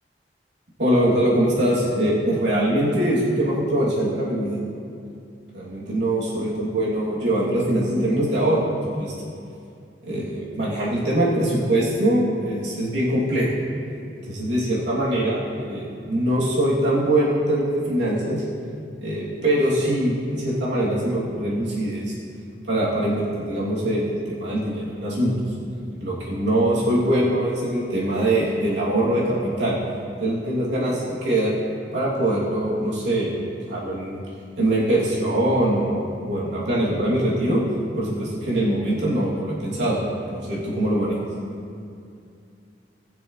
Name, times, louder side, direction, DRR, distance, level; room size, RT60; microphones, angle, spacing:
voice 1, 0.8-4.6 5.5-8.6 9.0-9.1 10.0-13.5 14.2-18.4 19.0-22.1 22.7-25.4 26.0-29.8 30.2-31.5 31.9-34.2 34.6-37.6 38.0-40.0 40.3-41.2, right 1 dB, 80° right, -7 dB, 2.8 m, -23 dB
20.0 x 6.8 x 3.2 m, 2.5 s
head